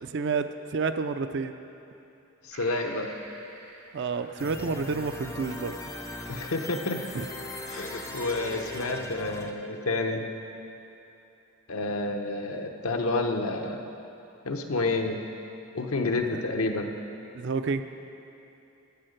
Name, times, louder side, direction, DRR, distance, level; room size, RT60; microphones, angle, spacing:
voice 1, 0.0-1.5 3.9-5.8 7.1-7.3 16.0-16.4 17.3-17.8, right 4 dB, 55° right, 10 dB, 0.4 m, -30 dB
voice 2, 2.5-3.1 6.3-7.0 7.7-10.2 11.7-13.8 14.4-15.2 15.7-16.9, left 2 dB, 80° left, 3 dB, 0.8 m, -29 dB
sound 1, 2.5-8.8, right 2 dB, 80° right, 2.2 m, -47 dB
sound 2, 4.4-9.5, left 2 dB, 15° left, 0.5 m, -39 dB
10.0 x 8.5 x 6.5 m, 2.9 s
head